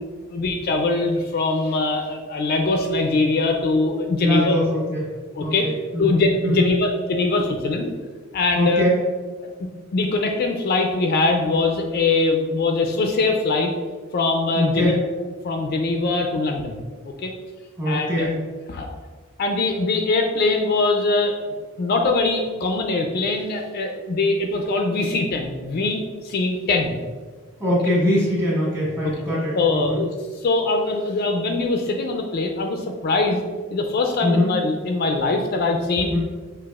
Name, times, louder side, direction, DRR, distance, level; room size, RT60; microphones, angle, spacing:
voice 1, 0.3-4.6 5.4-5.7 6.0-7.9 8.3-8.8 9.9-13.7 14.1-14.9 15.4-16.8 17.0-17.3 17.8-18.3 18.7-18.9 19.4-21.3 21.8-27.0 29.0-29.1 29.5-30.1 30.4-33.4 33.7-36.1, left 3 dB, 45° left, 3 dB, 0.3 m, -22 dB
voice 2, 4.2-5.1 5.4-6.8 8.5-9.0 14.5-15.0 17.8-18.4 27.6-30.0 34.2-34.5 36.1-36.2, left 1 dB, 15° right, -7 dB, 1.4 m, -22 dB
5.8 x 2.7 x 2.3 m, 1.4 s
head